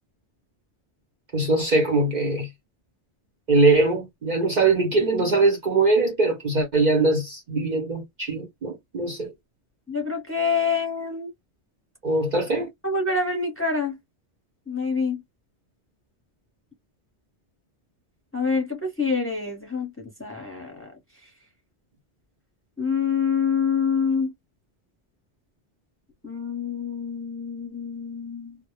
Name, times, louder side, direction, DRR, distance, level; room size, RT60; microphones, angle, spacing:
voice 1, 1.3-2.5 3.5-9.3 12.0-12.7, right 3 dB, 50° right, 0.7 m, -22 dB
voice 2, 9.9-11.3 12.8-14.0 14.7-15.2 18.3-20.9 22.8-24.3 26.2-28.6, left 5 dB, 15° left, 0.7 m, -26 dB
2.2 x 2.0 x 2.9 m
omnidirectional pair, 1.1 m